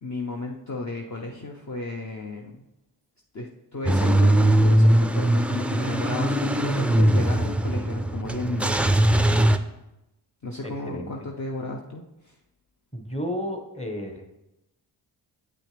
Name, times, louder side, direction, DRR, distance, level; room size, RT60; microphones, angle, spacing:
voice 1, 0.0-2.6 3.3-8.9 10.4-12.3, left 2 dB, 35° left, 0 dB, 0.9 m, -34 dB
Car / Engine starting / Idling, 3.9-9.6, right 1 dB, 5° right, 0.4 m, -20 dB
voice 2, 10.6-11.1 12.9-14.2, equal, 10° left, 4 dB, 1.4 m, -32 dB
8.0 x 6.1 x 3.4 m, 0.92 s
supercardioid pair, 45°, 50 cm